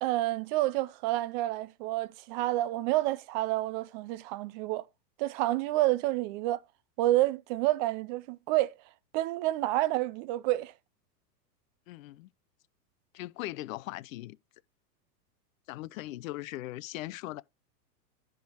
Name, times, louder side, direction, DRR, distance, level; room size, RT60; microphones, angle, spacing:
voice 1, 0.0-4.9 5.2-6.6 7.0-8.7 9.1-10.7, right 16 dB, 30° right, 0.5 m, -29 dB
voice 2, 11.9-12.3 13.1-14.4 15.7-17.4, left 17 dB, 55° left, 0.7 m, -39 dB
10.5 x 3.7 x 6.3 m
hypercardioid pair, 135°, 49 cm